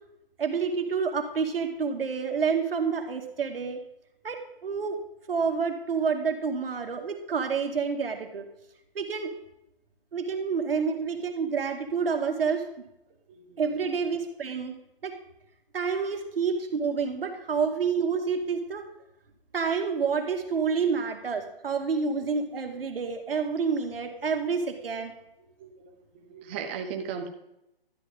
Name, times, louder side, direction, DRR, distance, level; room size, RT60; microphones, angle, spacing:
voice 1, 0.4-3.8 4.2-5.0 5.3-8.4 9.0-9.3 10.1-12.7 13.6-14.8 15.0-15.1 15.7-18.9 19.5-25.1, right 5 dB, 75° right, 4 dB, 2.0 m, -28 dB
voice 2, 13.3-13.6 22.2-22.3 25.6-26.0 26.3-27.3, right 6 dB, 10° right, 4 dB, 0.5 m, -37 dB
12.5 x 9.6 x 3.7 m, 0.85 s
hypercardioid pair, 160°, 29 cm